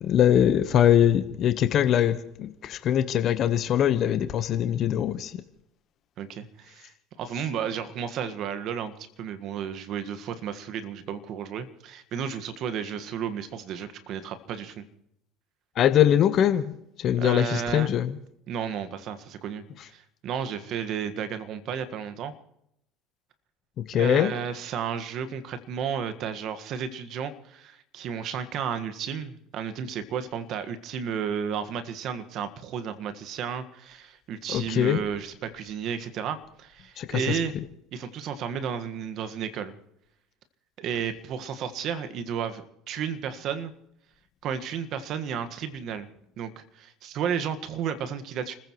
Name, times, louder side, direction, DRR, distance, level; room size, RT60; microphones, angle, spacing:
voice 1, 0.0-5.3 15.8-18.1 23.9-24.3 34.5-35.0 37.0-37.1, left 10 dB, 50° left, 10 dB, 1.1 m, -22 dB
voice 2, 6.2-6.9 7.2-8.9 9.2-14.8 17.2-17.9 18.5-22.3 23.9-37.5 37.9-39.7 40.8-43.7 44.4-46.1 46.4-48.5, right 7 dB, 55° right, 10 dB, 1.6 m, -33 dB
30.0 x 15.0 x 3.1 m, 0.77 s
hypercardioid pair, 80°, 0 cm